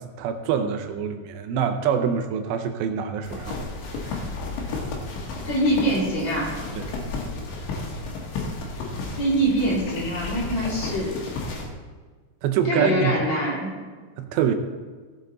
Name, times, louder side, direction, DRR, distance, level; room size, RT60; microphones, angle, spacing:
voice 1, 0.0-3.6 6.8-6.9 12.4-13.1 14.2-14.6, right 8 dB, 85° right, 7 dB, 2.9 m, -25 dB
footsteps in the snow birds and dog, 3.2-11.7, left 3 dB, 85° left, 3.9 m, -33 dB
voice 2, 5.4-6.5 9.1-11.2 12.7-13.7, right 1 dB, 45° left, -5 dB, 3.5 m, -24 dB
16.5 x 8.0 x 3.9 m, 1.4 s
omnidirectional pair, 5.0 m